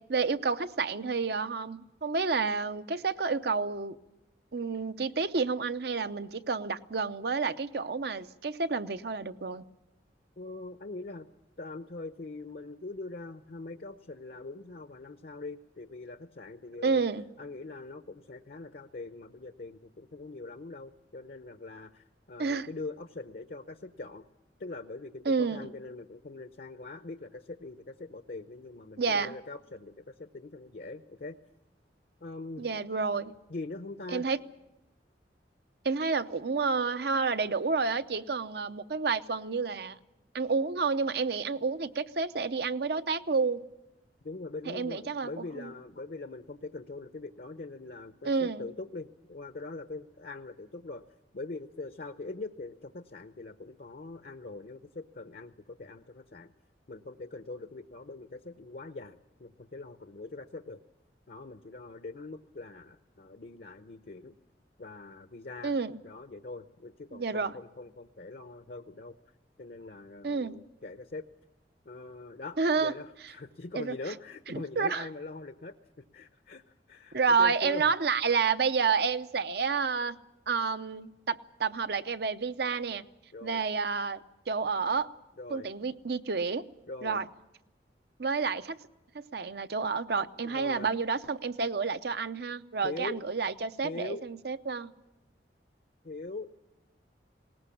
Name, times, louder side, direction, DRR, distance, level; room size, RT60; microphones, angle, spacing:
voice 1, 0.0-4.0 4.5-9.6 16.8-17.2 22.4-22.7 25.2-25.7 29.0-29.3 32.6-33.3 34.1-34.4 35.8-40.0 40.3-43.6 44.7-45.3 45.6-45.7 48.2-48.6 65.6-66.0 67.1-67.5 70.2-70.6 72.6-72.9 73.7-73.9 74.5-75.1 77.1-80.2 80.5-83.0 83.4-84.2 84.5-85.1 85.5-86.6 87.0-87.2 88.2-88.8 89.1-94.9, right 4 dB, 60° right, 0.7 m, -30 dB
voice 2, 10.4-11.3 11.6-17.0 17.4-24.2 24.6-31.4 32.2-32.6 33.5-34.2 44.2-51.0 51.3-56.5 56.9-60.8 61.3-64.4 64.8-65.8 66.0-69.1 69.6-71.2 71.9-77.9 83.3-83.6 85.4-85.7 86.9-87.2 90.4-90.9 92.8-93.2 93.8-94.3 96.0-96.5, left 3 dB, 55° left, 0.7 m, -42 dB
20.0 x 18.5 x 8.5 m
head